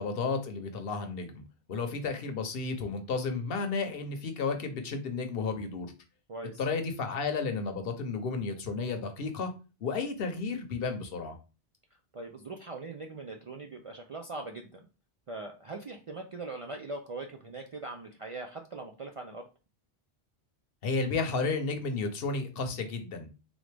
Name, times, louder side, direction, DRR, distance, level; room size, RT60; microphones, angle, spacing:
voice 1, 0.0-1.4 1.7-5.9 6.6-9.5 9.8-11.4 20.8-23.3, left 4 dB, 60° left, 7 dB, 0.9 m, -32 dB
voice 2, 6.3-6.6 12.1-14.8 15.3-19.5, right 3 dB, 60° right, 3 dB, 0.3 m, -41 dB
3.8 x 3.2 x 3.3 m, 0.32 s
omnidirectional pair, 1.1 m